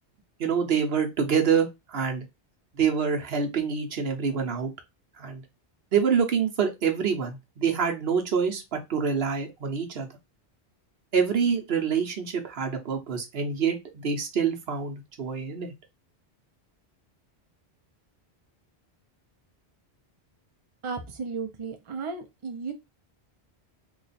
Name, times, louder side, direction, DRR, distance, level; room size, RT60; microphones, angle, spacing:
voice 1, 0.4-2.2 2.7-4.7 5.2-5.4 5.9-10.1 11.1-15.7, right 6 dB, 65° right, 4 dB, 1.0 m, -26 dB
voice 2, 20.8-22.7, right 5 dB, 35° right, 4 dB, 0.6 m, -34 dB
3.1 x 2.5 x 4.1 m, 0.22 s
omnidirectional pair, 1.1 m